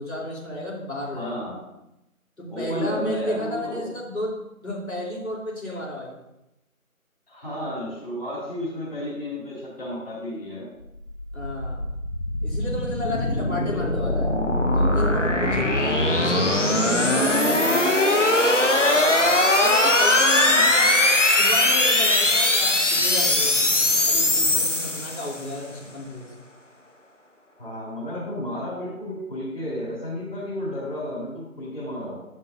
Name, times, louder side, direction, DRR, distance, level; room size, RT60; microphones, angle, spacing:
voice 1, 0.0-1.3 2.4-6.2 11.3-11.9 12.4-14.3 14.7-17.8 19.6-23.7 24.0-26.3, left 1 dB, 75° left, -4 dB, 3.7 m, -32 dB
voice 2, 1.1-1.6 2.5-3.9 7.3-10.7 18.9-19.3 20.5-21.0 27.6-32.2, left 1 dB, 40° left, -5 dB, 3.8 m, -32 dB
sound 1, 11.0-25.5, left 1 dB, 60° left, 1.5 m, -20 dB
11.5 x 11.0 x 2.7 m, 0.89 s
figure-of-eight pair, 170°, 43 cm